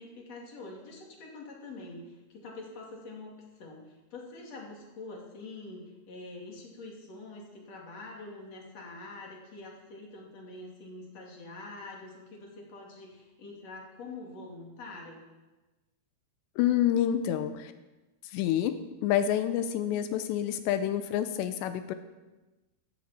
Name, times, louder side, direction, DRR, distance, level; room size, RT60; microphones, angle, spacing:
voice 1, 0.0-3.3 3.6-15.2, left 2 dB, 45° left, -1 dB, 3.3 m, -45 dB
voice 2, 16.6-17.7 18.2-21.9, left 10 dB, 85° left, 9 dB, 2.9 m, -28 dB
15.5 x 14.0 x 4.3 m, 1.1 s
omnidirectional pair, 4.9 m